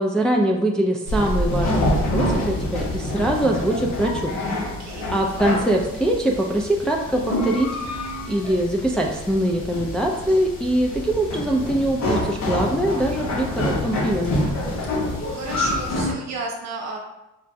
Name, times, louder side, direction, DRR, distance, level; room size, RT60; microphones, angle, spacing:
voice 1, 0.0-4.4 5.1-8.0 8.3-14.4, right 1 dB, 5° left, -1 dB, 0.4 m, -23 dB
sound 1, 1.1-16.1, left 1 dB, 60° left, 1.1 m, -26 dB
voice 2, 4.6-5.1 15.2-17.0, right 3 dB, 60° right, 0 dB, 1.0 m, -33 dB
5.6 x 2.1 x 2.6 m, 0.95 s
cardioid pair, 90°, 30 cm